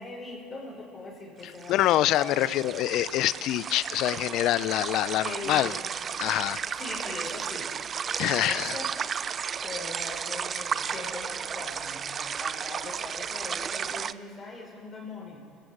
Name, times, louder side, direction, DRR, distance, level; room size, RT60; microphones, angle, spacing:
voice 1, 0.0-2.8 5.2-5.9 6.8-7.7 8.4-9.2 9.6-15.5, left 3 dB, 35° left, -2 dB, 5.5 m, -41 dB
sound 1, 1.4-14.1, right 7 dB, 40° right, 0.6 m, -34 dB
voice 2, 1.7-5.8 6.2-6.6 8.2-8.8, left 14 dB, 65° left, 19 dB, 0.5 m, -25 dB
26.5 x 14.5 x 8.0 m, 2.5 s
hypercardioid pair, 75°, 0 cm